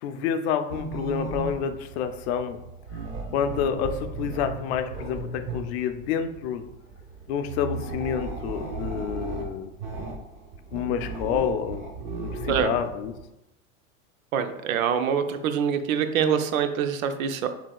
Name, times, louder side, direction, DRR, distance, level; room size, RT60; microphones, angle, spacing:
voice 1, 0.0-2.6 3.3-6.6 7.3-9.7 10.7-11.8 12.2-13.1, left 7 dB, 50° left, 8 dB, 0.5 m, -28 dB
sound 1, 0.7-13.3, right 3 dB, 20° right, 0.4 m, -36 dB
voice 2, 14.3-17.5, right 8 dB, 75° right, 8 dB, 0.6 m, -25 dB
6.0 x 3.4 x 2.3 m, 0.90 s
supercardioid pair, 135°, 41 cm